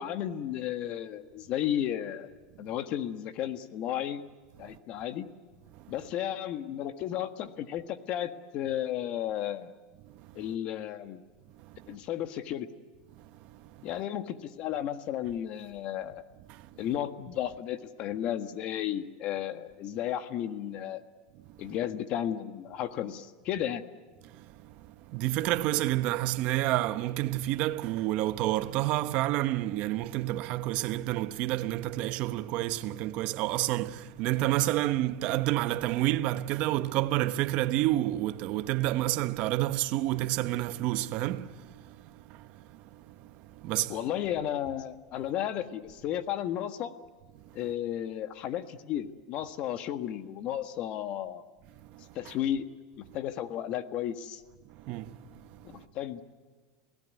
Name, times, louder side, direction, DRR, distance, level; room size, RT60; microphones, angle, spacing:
voice 1, 0.0-2.3 2.6-4.2 4.6-5.3 5.9-9.7 10.3-11.2 11.9-12.7 13.8-16.2 16.8-21.0 21.6-23.8 43.9-46.9 47.5-51.4 52.1-52.7 53.0-54.4 55.6-56.2, left 11 dB, 50° left, 1.6 m, -33 dB
voice 2, 13.2-13.8 16.5-16.7 24.3-44.0 51.8-52.3 54.7-55.8, right 15 dB, 55° right, 1.0 m, -30 dB
29.0 x 17.5 x 9.4 m
supercardioid pair, 135°, 3 cm